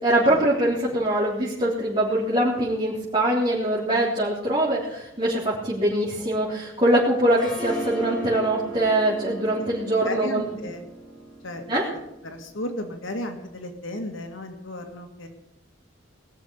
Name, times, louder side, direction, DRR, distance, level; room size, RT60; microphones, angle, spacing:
voice 1, 0.0-10.5 11.7-11.9, right 1 dB, 25° right, -7 dB, 3.6 m, -23 dB
Harp, 7.3-12.4, right 3 dB, 5° left, 4.0 m, -37 dB
voice 2, 10.1-10.8 11.4-11.6 12.2-15.3, left 1 dB, 85° left, 5 dB, 1.9 m, -34 dB
20.0 x 6.8 x 8.7 m, 0.91 s
head